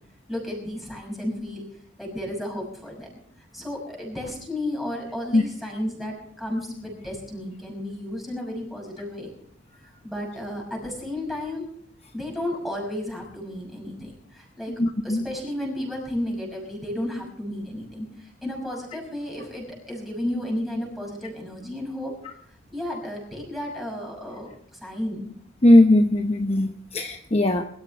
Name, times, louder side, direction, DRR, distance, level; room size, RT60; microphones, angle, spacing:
voice 1, 0.3-1.7 2.0-3.1 3.5-9.3 9.8-11.7 12.1-14.7 15.0-22.1 22.7-25.2, left 1 dB, ahead, -1 dB, 6.1 m, -33 dB
voice 2, 14.8-15.2 25.6-27.6, left 1 dB, 30° left, 4 dB, 0.8 m, -18 dB
23.5 x 13.5 x 3.4 m, 0.63 s
head